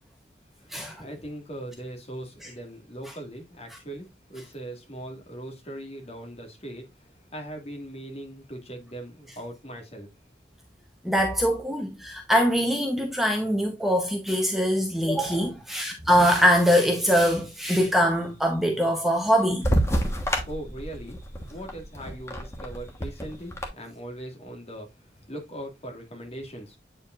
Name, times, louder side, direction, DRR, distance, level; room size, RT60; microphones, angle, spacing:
voice 1, 0.7-10.1 20.2-21.2 21.5-24.9 25.3-26.8, right 1 dB, 35° left, 2.0 m, -40 dB
voice 2, 11.0-19.7, equal, ahead, 0.9 m, -23 dB
sound 1, 19.6-23.7, equal, 15° left, 1.3 m, -28 dB
8.5 x 4.9 x 2.4 m
head